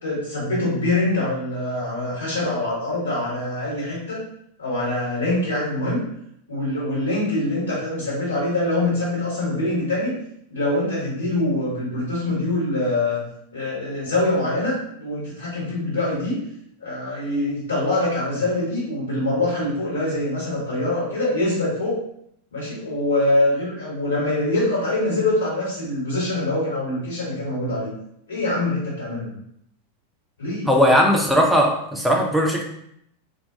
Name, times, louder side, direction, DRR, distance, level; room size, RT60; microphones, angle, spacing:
voice 1, 0.0-4.2 4.6-6.0 6.5-10.2 10.5-13.2 13.5-16.4 16.8-22.0 22.5-27.9 28.3-29.3 30.4-30.7, left 2 dB, 70° left, -7 dB, 1.3 m, -24 dB
voice 2, 30.7-32.6, equal, 5° right, 0 dB, 0.5 m, -18 dB
2.2 x 2.2 x 2.7 m, 0.73 s
figure-of-eight pair, 90°, 0 cm